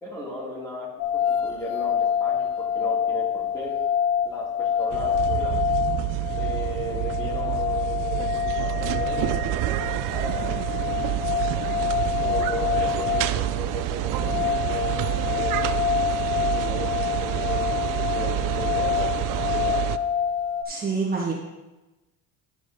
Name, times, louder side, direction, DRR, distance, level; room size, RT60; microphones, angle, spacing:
voice 1, 0.0-3.8 4.2-5.7 6.3-11.2 12.2-15.8 16.4-19.9, equal, 10° left, -4 dB, 2.6 m, -36 dB
sound 1, 1.0-20.6, left 8 dB, 65° left, 1.0 m, -27 dB
sound 2, 4.9-20.0, right 14 dB, 60° right, 0.5 m, -28 dB
voice 2, 20.7-21.3, right 4 dB, 25° right, -4 dB, 1.7 m, -26 dB
11.0 x 4.9 x 4.0 m, 1.1 s
cardioid pair, 105°, 36 cm